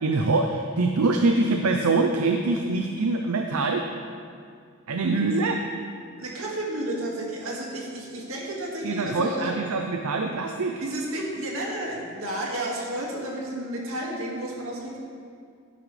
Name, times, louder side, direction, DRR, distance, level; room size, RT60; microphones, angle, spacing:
voice 1, 0.0-3.9 4.9-5.6 8.8-10.8, right 3 dB, 90° right, 4 dB, 0.6 m, -24 dB
voice 2, 6.2-9.6 10.8-15.0, right 1 dB, 70° right, -2 dB, 2.1 m, -32 dB
12.0 x 10.0 x 3.3 m, 2.2 s
head